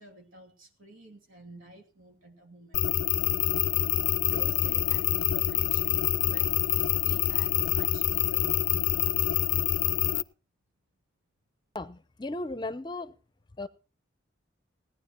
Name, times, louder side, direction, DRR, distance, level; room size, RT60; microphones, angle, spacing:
voice 1, 0.0-3.2 4.2-9.0, right 1 dB, 90° right, 2.6 m, -51 dB
sound 1, 2.7-10.2, left 12 dB, 90° left, 0.5 m, -26 dB
voice 2, 11.7-13.1 13.6-13.7, left 2 dB, 20° left, 0.6 m, -36 dB
17.5 x 9.9 x 4.5 m
head